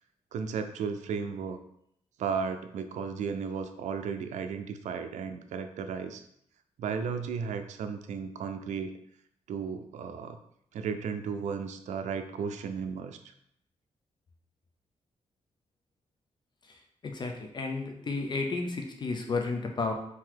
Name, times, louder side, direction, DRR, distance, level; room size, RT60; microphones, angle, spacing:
voice 1, 0.3-1.6 2.2-6.2 6.8-8.9 9.5-10.4 10.7-13.2, right 6 dB, 90° right, 8 dB, 0.4 m, -34 dB
voice 2, 16.7-19.9, left 3 dB, 40° left, 3 dB, 0.6 m, -32 dB
3.8 x 2.9 x 4.6 m, 0.72 s
cardioid pair, 120°, 12 cm